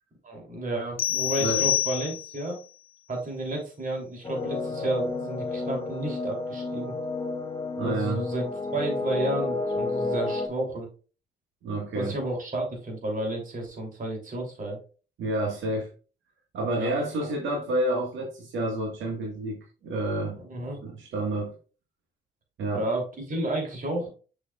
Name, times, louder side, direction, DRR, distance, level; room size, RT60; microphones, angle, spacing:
voice 1, 0.2-2.6 3.1-6.9 7.8-10.9 11.9-14.8 16.7-17.3 20.3-20.8 22.7-24.1, right 1 dB, 40° right, 1 dB, 3.2 m, -32 dB
sound 1, 1.0-2.5, left 11 dB, 50° left, 0.6 m, -27 dB
sound 2, 4.2-10.5, left 3 dB, 20° left, 2.0 m, -31 dB
voice 2, 7.8-8.2 11.6-12.2 15.2-15.9 16.5-20.4 20.8-21.5 22.6-22.8, right 1 dB, 75° right, -1 dB, 1.7 m, -29 dB
6.5 x 6.3 x 2.4 m, 0.36 s
cardioid pair, 90°, 20 cm